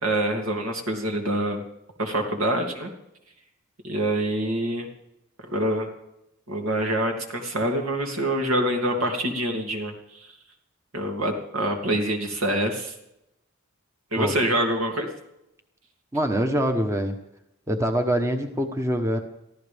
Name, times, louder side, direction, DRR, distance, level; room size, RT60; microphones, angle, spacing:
voice 1, 0.0-1.6 2.0-2.9 3.8-4.9 5.5-5.9 6.5-9.9 10.9-12.9 14.1-15.1, right 1 dB, 75° right, 3 dB, 2.7 m, -25 dB
voice 2, 16.1-17.2 17.7-19.2, equal, 15° right, 5 dB, 1.1 m, -24 dB
23.5 x 15.0 x 3.5 m, 0.84 s
head